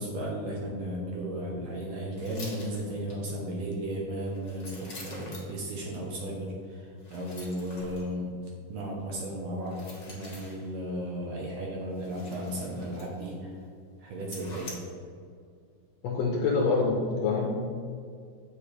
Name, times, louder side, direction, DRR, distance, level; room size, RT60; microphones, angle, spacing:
voice 1, 0.0-8.3 8.7-13.5 14.0-14.7, right 1 dB, 70° right, -2 dB, 1.7 m, -35 dB
sound 1, 2.1-3.2 4.2-5.6 7.0-8.1 9.6-10.7 11.9-13.3 13.6-13.7 14.2-14.7, left 2 dB, 40° left, 1.0 m, -46 dB
voice 2, 16.0-17.5, left 4 dB, 75° left, -1 dB, 1.5 m, -26 dB
8.4 x 5.5 x 3.3 m, 2.3 s
omnidirectional pair, 3.6 m